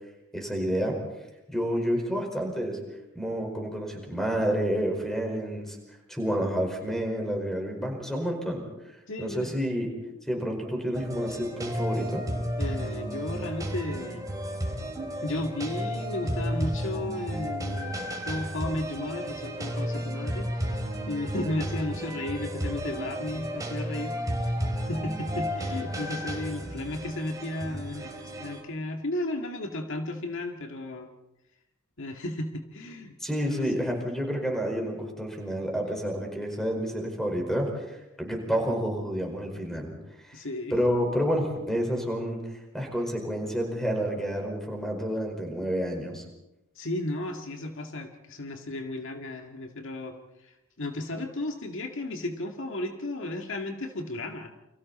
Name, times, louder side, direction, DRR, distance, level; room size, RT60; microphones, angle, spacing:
voice 1, 0.3-1.0 1.5-2.8 3.1-5.8 6.1-8.6 9.2-9.9 10.3-12.2 33.2-39.9 40.2-40.4 40.7-42.4 42.7-46.2, equal, ahead, 2 dB, 5.0 m, -29 dB
voice 2, 9.1-9.5 12.6-14.3 15.2-18.0 18.3-24.6 24.9-31.1 32.0-33.1 33.5-33.6 40.3-40.7 46.8-50.2 50.4-54.5, left 1 dB, 65° left, 4 dB, 2.0 m, -34 dB
sound 1, 10.9-28.6, equal, 15° right, 3.5 m, -33 dB
29.5 x 24.5 x 4.3 m, 0.93 s
head